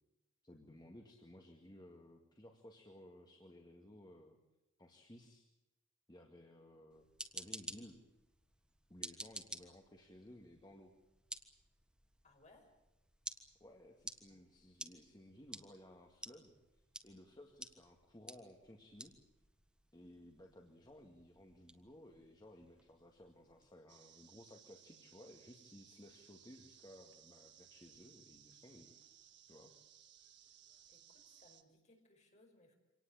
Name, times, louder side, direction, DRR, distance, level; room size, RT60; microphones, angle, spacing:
voice 1, 0.4-4.4 4.8-5.5 6.1-7.1 7.3-8.0 8.9-10.9 13.6-16.6 17.0-19.1 19.9-29.0 29.5-29.7, left 1 dB, 20° left, 2 dB, 2.1 m, -58 dB
sound 1, 6.9-23.7, right 1 dB, 5° right, 1.5 m, -53 dB
voice 2, 12.2-12.8 14.3-14.5 30.9-32.7, left 2 dB, 40° left, 3 dB, 5.5 m, -67 dB
sound 2, 23.9-31.6, right 10 dB, 60° right, 1.9 m, -63 dB
25.5 x 18.5 x 8.9 m, 0.94 s
head